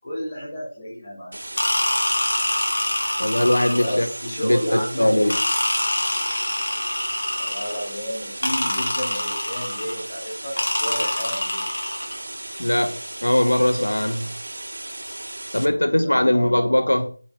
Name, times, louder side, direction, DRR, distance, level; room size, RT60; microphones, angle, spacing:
voice 1, 0.0-1.4 3.8-5.4 7.4-11.7 16.0-16.8, equal, 20° left, 6.3 m, -31 dB
sound 1, 1.3-15.7, right 1 dB, 50° right, 3.2 m, -36 dB
sound 2, 1.6-4.1 5.3-7.9 8.4-10.0 10.6-12.2, left 1 dB, 50° left, 4.7 m, -25 dB
voice 2, 3.2-4.1 4.4-5.4 12.6-14.3 15.5-17.1, left 1 dB, 85° left, 1.9 m, -20 dB
9.4 x 8.2 x 6.2 m
figure-of-eight pair, 175°, 0 cm